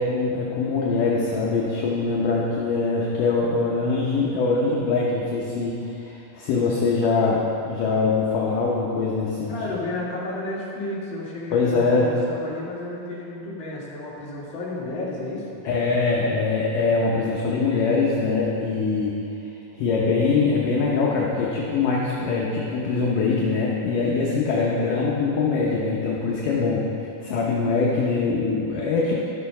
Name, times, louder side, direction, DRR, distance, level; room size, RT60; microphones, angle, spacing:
voice 1, 0.0-9.5 11.5-12.2 15.6-19.2 19.7-26.8 27.2-29.2, left 4 dB, 70° left, -4 dB, 2.2 m, -23 dB
voice 2, 9.5-15.6, left 2 dB, 35° left, -7 dB, 2.3 m, -32 dB
12.5 x 6.8 x 5.4 m, 2.8 s
omnidirectional pair, 4.6 m